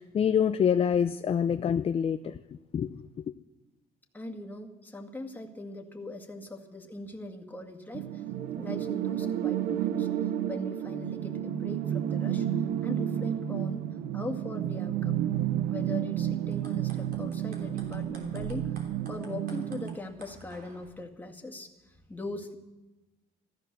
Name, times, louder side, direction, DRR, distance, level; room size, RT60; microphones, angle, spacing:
voice 1, 0.0-2.4 2.7-3.0, left 8 dB, 35° left, 0.5 m, -26 dB
voice 2, 4.1-8.2 8.6-10.1 10.5-12.5 12.8-13.9 14.1-15.2 15.7-18.7 19.1-22.5, left 2 dB, 10° left, 2.1 m, -40 dB
sound 1, 7.9-20.0, right 11 dB, 85° right, 0.8 m, -31 dB
sound 2, 16.5-20.9, right 2 dB, 65° right, 3.3 m, -50 dB
14.5 x 14.0 x 6.8 m
cardioid pair, 110°, 17 cm